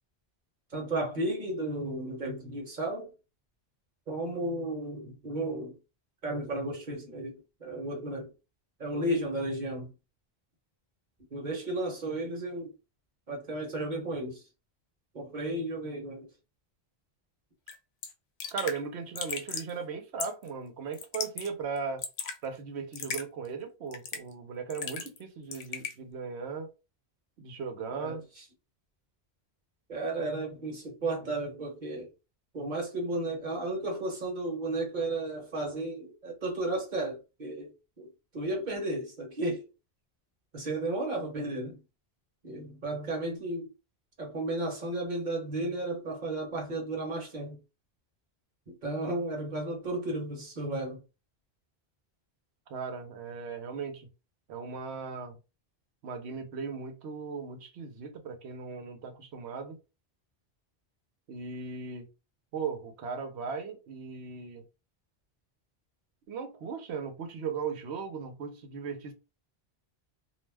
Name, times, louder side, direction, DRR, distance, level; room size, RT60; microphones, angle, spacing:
voice 1, 0.7-3.1 4.1-5.8 6.2-7.3 7.6-8.3 8.8-9.9 11.3-12.7 13.3-14.4 15.1-16.3 27.9-28.4 29.9-32.1 32.5-38.1 38.3-39.7 40.5-41.8 42.4-43.7 44.2-47.6 48.7-51.0, right 2 dB, 45° right, 1.0 m, -33 dB
Raindrop / Drip, 17.7-17.8 18.0-18.1 18.4-18.8 19.2-19.7 20.2-20.5 20.9-21.5 21.8-22.4 22.9-23.2 23.9-24.3 24.7-25.2 25.5-25.9, left 6 dB, 80° left, 0.8 m, -36 dB
voice 2, 18.5-22.0 22.4-26.7 27.4-28.2 52.7-54.1 54.5-55.4 56.0-59.8 61.3-62.1 62.5-64.6 66.3-69.1, right 5 dB, 80° right, 0.9 m, -37 dB
2.4 x 2.1 x 3.3 m
omnidirectional pair, 1.1 m